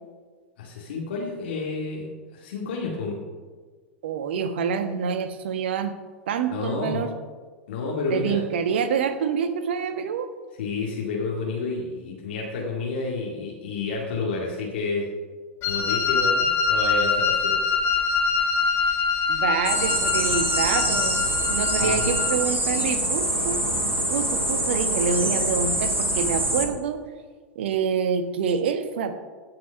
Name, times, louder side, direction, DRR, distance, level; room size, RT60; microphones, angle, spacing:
voice 1, 0.6-3.2 6.5-7.0 7.7-8.4 10.6-15.1 15.7-17.6 21.8-22.1, left 3 dB, 60° left, -3 dB, 2.1 m, -30 dB
voice 2, 4.0-5.9 6.3-7.1 8.1-10.3 19.3-23.6 24.1-27.0 27.5-29.1, right 6 dB, 60° right, 9 dB, 1.2 m, -27 dB
Wind instrument woodwind instrument, 15.6-22.4, left 5 dB, 35° left, 3.0 m, -24 dB
sound 1, 19.6-26.7, right 1 dB, 85° right, 1.9 m, -25 dB
15.5 x 6.0 x 5.7 m, 1.5 s
figure-of-eight pair, 90°, 7 cm